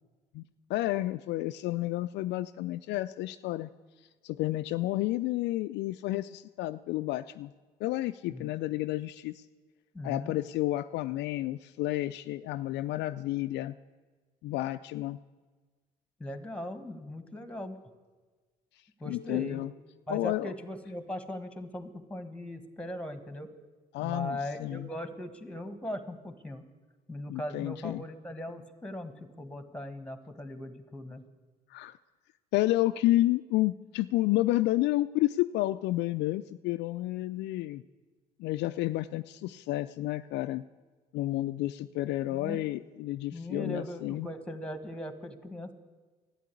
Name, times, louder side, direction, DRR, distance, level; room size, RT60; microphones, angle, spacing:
voice 1, 0.7-3.7 4.2-7.5 7.8-9.4 10.0-13.7 14.4-15.2 19.1-19.7 20.1-20.5 23.9-24.9 27.3-28.0 31.7-32.0 32.5-37.8 38.4-40.6 41.1-44.3, left 16 dB, 60° left, 11 dB, 0.4 m, -30 dB
voice 2, 9.9-10.3 16.2-17.8 19.0-19.6 20.1-23.5 24.0-26.6 27.1-31.2 42.3-42.6 43.3-45.7, left 1 dB, 5° left, 10 dB, 1.4 m, -39 dB
12.0 x 9.0 x 8.4 m, 1.3 s
hypercardioid pair, 55°, 20 cm